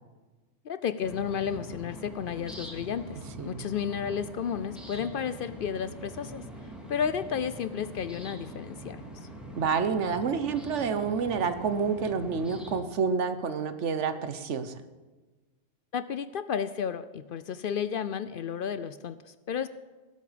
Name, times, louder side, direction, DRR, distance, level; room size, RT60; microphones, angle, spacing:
voice 1, 0.6-6.4 6.9-9.0 15.9-19.7, left 7 dB, 60° left, 14 dB, 0.6 m, -32 dB
sound 1, 1.0-12.8, equal, ahead, 2.5 m, -44 dB
voice 2, 9.6-14.8, right 5 dB, 80° right, 10 dB, 1.3 m, -28 dB
19.0 x 8.5 x 5.1 m, 1.3 s
omnidirectional pair, 1.2 m